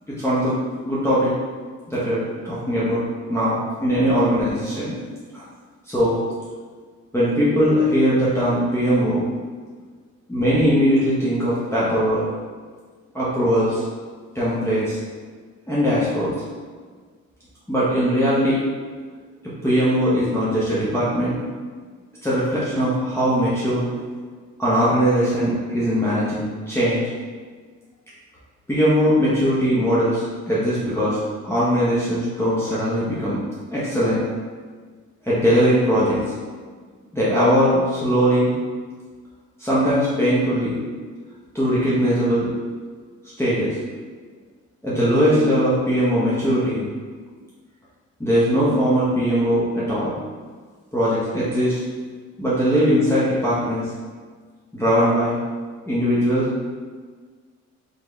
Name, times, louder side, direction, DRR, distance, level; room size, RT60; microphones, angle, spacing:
voice 1, 0.1-0.6 0.8-1.3 1.9-3.0 3.3-4.9 5.3-5.4 5.9-6.2 7.1-9.2 10.3-12.3 13.1-13.8 14.3-15.0 15.7-16.3 17.7-18.6 19.6-21.4 22.2-23.8 24.6-27.0 28.7-33.4 33.7-34.2 35.2-36.2 37.1-38.5 39.6-40.8 41.5-42.5 43.4-43.8 44.8-46.9 48.2-50.2 50.9-51.8 52.4-53.9 54.7-55.4 55.9-56.5, equal, 10° left, -10 dB, 1.1 m, -20 dB
3.8 x 3.4 x 3.4 m, 1.5 s
cardioid pair, 90°, 30 cm